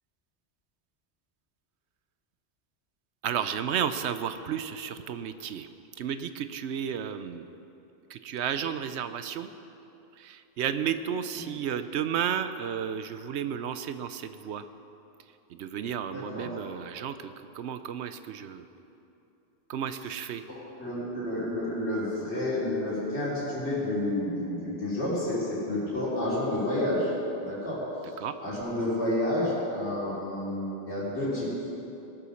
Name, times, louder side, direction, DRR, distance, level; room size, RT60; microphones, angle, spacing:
voice 1, 3.2-5.7 6.0-7.5 8.1-9.5 10.2-14.6 15.5-18.7 19.7-20.4 28.2-28.4, right 8 dB, 85° right, 11 dB, 0.9 m, -32 dB
voice 2, 16.1-16.5 20.5-27.1 27.4-27.8 28.4-31.5, left 1 dB, 85° left, -9 dB, 3.7 m, -30 dB
19.0 x 6.9 x 6.4 m, 2.8 s
omnidirectional pair, 1.1 m